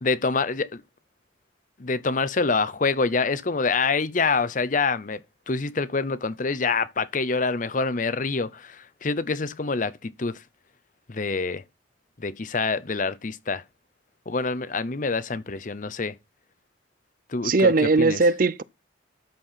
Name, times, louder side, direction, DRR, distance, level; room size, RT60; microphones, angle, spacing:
voice 1, 0.0-0.8 1.8-5.2 5.5-10.4 11.1-11.6 12.2-13.6 14.3-16.1 17.3-17.7 18.0-18.2, left 4 dB, 45° left, 0.7 m, -26 dB
voice 2, 17.4-18.6, right 3 dB, 50° right, 0.6 m, -19 dB
13.0 x 4.5 x 5.7 m
head